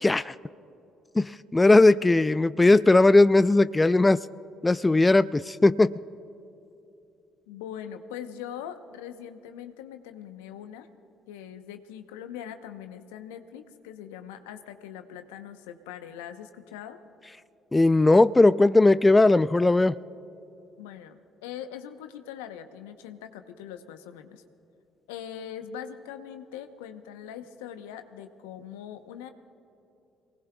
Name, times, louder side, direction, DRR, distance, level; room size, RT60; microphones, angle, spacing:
voice 1, 0.0-0.3 1.2-4.2 4.6-5.9 17.7-20.0, left 2 dB, 20° left, 15 dB, 0.4 m, -18 dB
voice 2, 7.5-10.9 11.3-17.0 20.8-24.4 25.1-29.3, left 9 dB, 80° left, 8 dB, 0.9 m, -41 dB
27.0 x 19.5 x 2.3 m, 2.8 s
hypercardioid pair, 50°, 0 cm